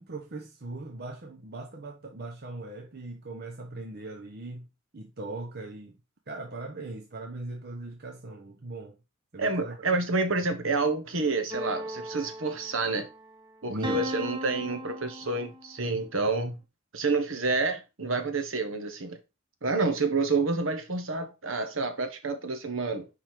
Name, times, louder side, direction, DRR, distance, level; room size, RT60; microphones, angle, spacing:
voice 1, 0.0-4.7 4.9-6.0 6.3-9.0 9.3-9.8 13.7-14.0, right 2 dB, 50° right, 0.9 m, -39 dB
voice 2, 9.4-13.1 13.6-16.6 16.9-19.2 19.6-23.1, right 3 dB, 65° right, 1.3 m, -28 dB
sound 1, 11.5-13.2 13.8-15.8, equal, 20° right, 0.9 m, -37 dB
5.6 x 5.0 x 4.5 m
head